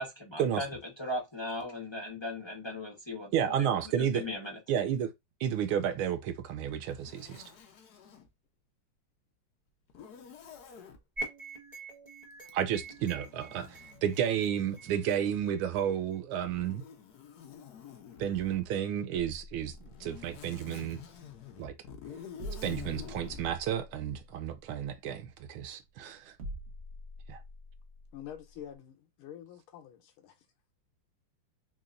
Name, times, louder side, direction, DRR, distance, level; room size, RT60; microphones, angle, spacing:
voice 1, 0.0-3.7 4.0-4.6, left 1 dB, 25° left, 0.5 m, -38 dB
voice 2, 3.3-4.2 4.7-5.1 5.4-7.4 12.5-16.8 18.2-19.7 20.0-21.0 21.6-21.7 22.6-26.3 27.3-27.4, right 9 dB, 80° right, 1.5 m, -31 dB
Zipper (clothing), 6.9-8.3 9.9-11.0 12.4-15.6 16.4-18.7 19.6-23.6, left 7 dB, 60° left, 1.0 m, -49 dB
sound 1, 11.2-16.2, right 3 dB, 20° right, 1.4 m, -45 dB
sound 2, 19.2-28.8, equal, 55° right, 0.7 m, -47 dB
voice 3, 28.1-30.4, left 10 dB, 80° left, 1.7 m, -47 dB
4.0 x 2.9 x 2.5 m
omnidirectional pair, 2.4 m